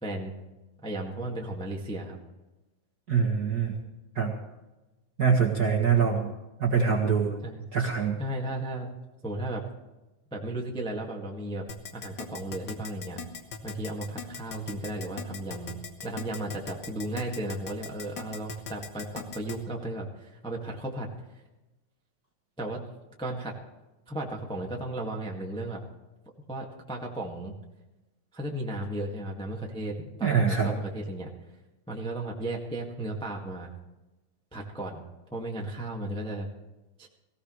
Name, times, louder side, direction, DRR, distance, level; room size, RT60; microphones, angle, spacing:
voice 1, 0.0-0.3 0.8-2.2 7.4-7.6 8.2-8.9 9.2-9.6 10.3-11.6 11.9-13.2 13.6-21.1 22.6-22.8 23.2-23.5 24.1-25.8 26.5-27.5 28.3-31.3 31.9-33.7 34.5-35.0 35.3-36.5 37.0-37.1, right 1 dB, 5° left, -1 dB, 0.6 m, -35 dB
voice 2, 3.1-3.7 4.1-4.3 5.2-6.3 6.6-7.3 7.7-8.2 30.2-30.7, right 6 dB, 45° right, -2 dB, 1.3 m, -24 dB
Keyboard (musical), 11.7-19.6, left 6 dB, 55° left, 1.3 m, -39 dB
19.0 x 16.0 x 3.2 m, 1.1 s
omnidirectional pair, 3.9 m